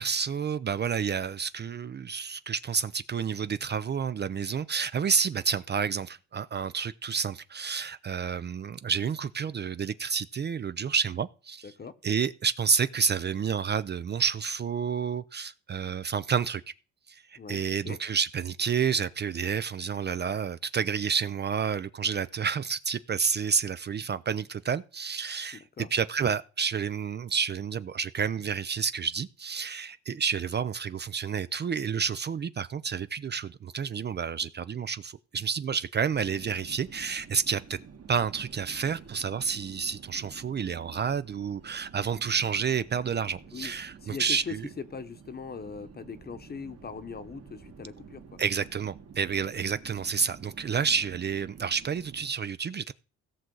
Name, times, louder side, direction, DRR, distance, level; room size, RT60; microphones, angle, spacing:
voice 1, 0.0-11.7 12.0-16.6 17.1-25.6 25.9-37.8 38.1-44.7 48.4-52.9, right 6 dB, 35° right, 0.5 m, -30 dB
voice 2, 11.6-11.9 17.3-18.0 25.5-25.9 43.5-43.7 44.0-48.4, left 5 dB, 30° left, 1.0 m, -40 dB
sound 1, 36.1-52.3, right 6 dB, 50° right, 1.9 m, -50 dB
17.0 x 6.2 x 3.9 m
cardioid pair, 90°, 30 cm